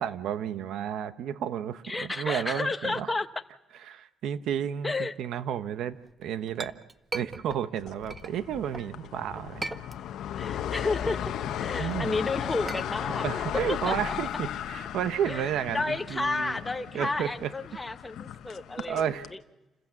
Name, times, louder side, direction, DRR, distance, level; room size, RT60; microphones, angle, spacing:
voice 1, 0.0-3.1 3.9-6.7 7.1-9.7 11.8-12.2 13.2-16.6 16.9-17.5 18.9-19.3, right 9 dB, 80° right, 12 dB, 1.1 m, -32 dB
voice 2, 1.8-3.3 4.8-5.1 10.4-11.2 11.6-13.2 13.8-14.1 15.3-15.5 15.7-19.0 19.3-19.4, left 3 dB, 15° left, 7 dB, 1.2 m, -31 dB
Chink clink, 6.1-8.9 9.4-10.4 10.7-14.8, right 3 dB, 25° right, 0.8 m, -41 dB
sound 1, 7.8-19.3, left 10 dB, 80° left, 1.0 m, -36 dB
28.5 x 15.5 x 7.3 m, 1.0 s
cardioid pair, 90°, 0 cm